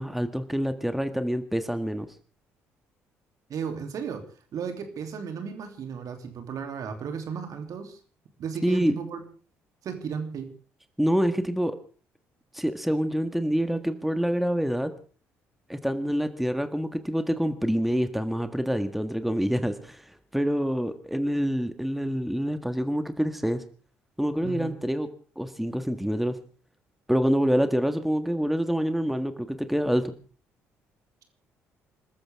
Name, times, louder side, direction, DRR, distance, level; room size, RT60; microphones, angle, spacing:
voice 1, 0.0-2.1 8.6-9.0 11.0-11.8 12.5-14.9 15.7-23.6 24.2-25.1 25.3-26.4 27.1-30.1, equal, ahead, 9 dB, 1.7 m, -26 dB
voice 2, 3.5-4.2 4.5-8.0 8.4-9.2 9.8-10.5 24.4-24.7, right 6 dB, 55° right, 6 dB, 3.0 m, -34 dB
27.5 x 14.0 x 3.6 m, 0.39 s
hypercardioid pair, 50°, 7 cm